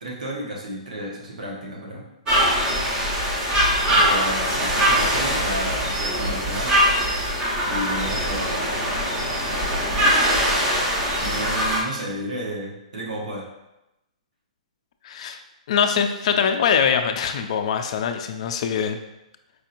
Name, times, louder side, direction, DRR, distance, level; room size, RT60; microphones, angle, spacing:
voice 1, 0.0-2.1 3.9-6.8 7.7-8.8 11.2-13.5, right 1 dB, 85° right, -3 dB, 1.2 m, -32 dB
sound 1, 2.3-11.8, equal, 20° right, 1.0 m, -22 dB
voice 2, 15.0-15.4 15.7-19.0, left 7 dB, 55° left, 7 dB, 0.4 m, -23 dB
4.7 x 2.8 x 2.6 m, 0.92 s
hypercardioid pair, 145°, 4 cm